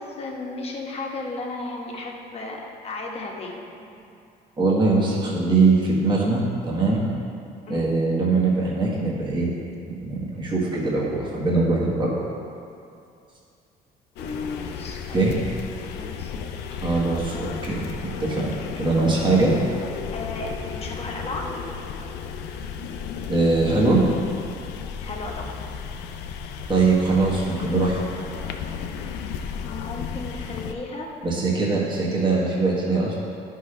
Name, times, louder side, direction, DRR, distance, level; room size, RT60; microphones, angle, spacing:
voice 1, 0.0-3.6 7.7-7.9 14.2-15.2 15.9-16.3 20.1-21.5 25.0-25.6 29.6-31.1, left 2 dB, 35° left, -1 dB, 1.3 m, -34 dB
voice 2, 4.6-7.0 7.7-9.5 10.0-12.3 15.1-15.3 16.8-19.5 21.4-21.6 23.3-24.0 26.7-28.0 31.2-33.2, right 3 dB, 30° right, -5 dB, 1.5 m, -22 dB
sound 1, 14.2-30.7, left 6 dB, 90° left, 0.5 m, -34 dB
11.0 x 5.7 x 3.4 m, 2.5 s
cardioid pair, 110°, 17 cm